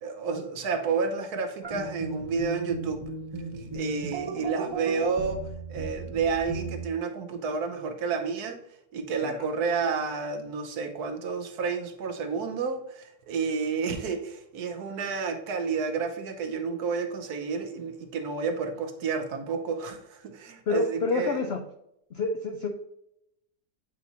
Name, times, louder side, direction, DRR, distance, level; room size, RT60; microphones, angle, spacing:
voice 1, 0.0-3.0 3.7-5.4 5.7-8.6 8.9-21.4, right 5 dB, 70° right, 5 dB, 1.3 m, -30 dB
sound 1, 1.6-6.9, right 3 dB, 40° right, 0.3 m, -36 dB
voice 2, 20.7-21.6 22.1-22.7, left 3 dB, 75° left, 5 dB, 0.5 m, -28 dB
8.3 x 4.1 x 2.8 m, 0.78 s
omnidirectional pair, 1.8 m